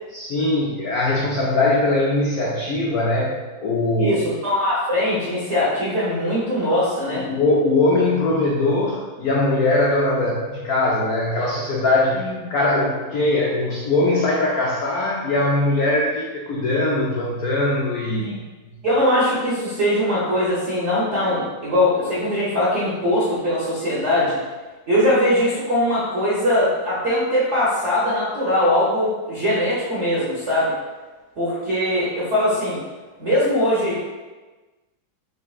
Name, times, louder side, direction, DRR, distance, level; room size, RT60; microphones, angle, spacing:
voice 1, 0.1-4.2 7.1-18.4, left 2 dB, 80° left, -3 dB, 0.8 m, -21 dB
voice 2, 4.0-7.2 12.2-12.4 18.2-18.4 18.8-24.4 24.9-30.7 31.4-32.8 33.2-34.0, left 1 dB, 45° right, -8 dB, 1.0 m, -21 dB
5.2 x 3.5 x 2.4 m, 1.3 s
omnidirectional pair, 2.2 m